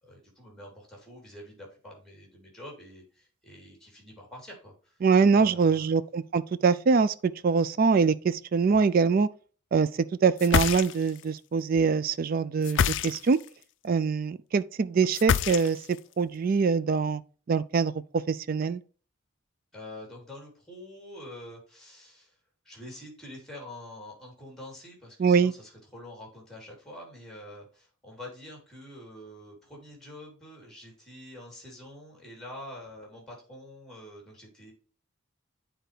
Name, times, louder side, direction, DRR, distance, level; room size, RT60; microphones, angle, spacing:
voice 1, 0.0-5.0 5.3-5.9 19.7-22.3 22.6-34.7, left 1 dB, ahead, 3.1 m, -46 dB
voice 2, 5.0-9.3 9.7-9.9 10.2-13.4 13.8-17.2 17.5-18.8 25.2-25.5, right 5 dB, 45° right, 0.3 m, -24 dB
sound 1, 10.4-11.2 12.6-13.5 15.1-16.0, left 7 dB, 60° left, 0.4 m, -26 dB
9.1 x 4.5 x 3.2 m
head